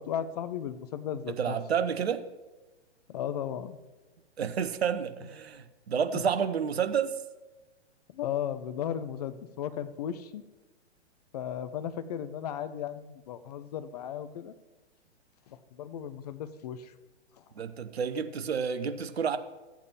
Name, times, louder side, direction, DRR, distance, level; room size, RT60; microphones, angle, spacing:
voice 1, 0.0-1.6 3.1-3.8 8.1-10.4 11.3-14.5 15.5-16.9, left 9 dB, 35° left, 12 dB, 0.6 m, -35 dB
voice 2, 1.4-2.2 4.4-7.2 17.6-19.4, right 7 dB, 60° right, 10 dB, 0.9 m, -30 dB
14.5 x 8.6 x 3.0 m, 1.2 s
figure-of-eight pair, 115°, 35 cm